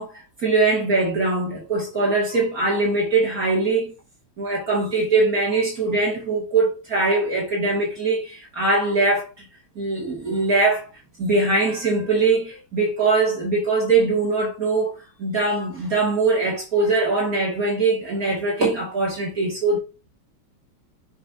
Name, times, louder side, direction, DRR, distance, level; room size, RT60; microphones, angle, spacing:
voice 1, 0.0-3.9 4.4-9.5 9.8-10.9 11.2-19.8, right 3 dB, 50° right, 2.9 m, -22 dB
7.0 x 6.8 x 2.8 m
omnidirectional pair, 2.0 m